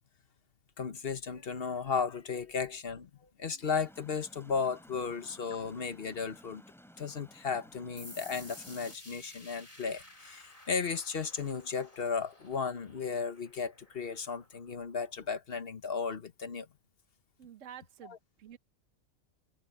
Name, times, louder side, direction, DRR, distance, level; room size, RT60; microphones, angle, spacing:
voice 1, 0.8-6.6 7.0-16.7 18.1-18.2, left 5 dB, 45° left, 1.2 m, -35 dB
sound 1, 3.6-9.0, equal, ahead, 5.4 m, -57 dB
sound 2, 8.0-15.3, left 1 dB, 25° left, 4.4 m, -54 dB
voice 2, 17.4-18.6, right 9 dB, 65° right, 1.3 m, -50 dB
omnidirectional pair, 1.4 m